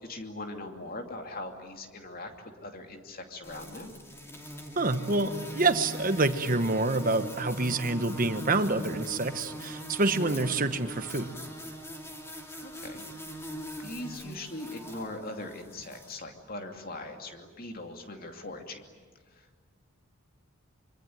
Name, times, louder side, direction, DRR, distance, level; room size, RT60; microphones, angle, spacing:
voice 1, 0.0-3.9 12.6-13.3 13.8-18.9 19.3-19.7, left 2 dB, 40° left, 4 dB, 2.7 m, -41 dB
sound 1, 3.4-16.2, right 1 dB, 10° left, 2.9 m, -41 dB
voice 2, 4.8-11.3, right 2 dB, 40° right, 10 dB, 1.2 m, -27 dB
25.5 x 24.5 x 9.4 m, 1.5 s
head